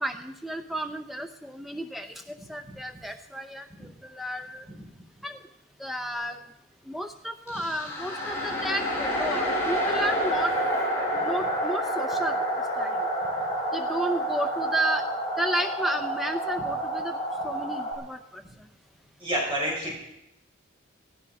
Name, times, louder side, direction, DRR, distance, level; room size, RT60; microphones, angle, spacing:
voice 1, 0.0-3.6 4.1-4.6 5.2-5.4 5.8-6.4 6.9-10.5 11.1-12.4 12.8-12.9 13.7-15.0 15.4-17.2 17.4-18.4, right 1 dB, ahead, 7 dB, 0.5 m, -32 dB
sound 1, 7.5-17.9, equal, 15° left, 6.1 m, -28 dB
voice 2, 19.2-20.0, equal, 25° right, -3 dB, 5.9 m, -28 dB
17.0 x 16.0 x 5.3 m, 0.86 s
head